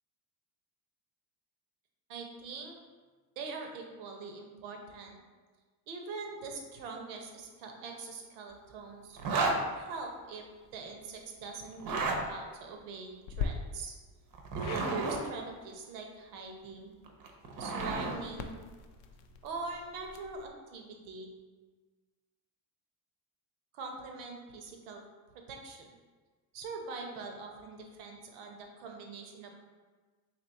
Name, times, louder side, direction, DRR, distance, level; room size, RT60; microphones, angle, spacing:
voice 1, 2.1-2.8 3.4-5.2 5.9-10.4 10.7-13.9 14.6-17.0 17.6-18.6 19.4-21.3 23.7-25.0 25.5-25.9 26.5-29.7, right 4 dB, 85° right, 3 dB, 0.8 m, -42 dB
Zipper (clothing), 9.2-9.6 11.7-12.2 14.3-15.2 17.1-18.2, right 3 dB, 45° right, 0.7 m, -32 dB
sound 1, 11.9-12.2 13.3-13.5 14.6-14.9 17.7-20.5, left 7 dB, 65° left, 0.5 m, -41 dB
3.0 x 3.0 x 4.0 m, 1.4 s
supercardioid pair, 80°, 48 cm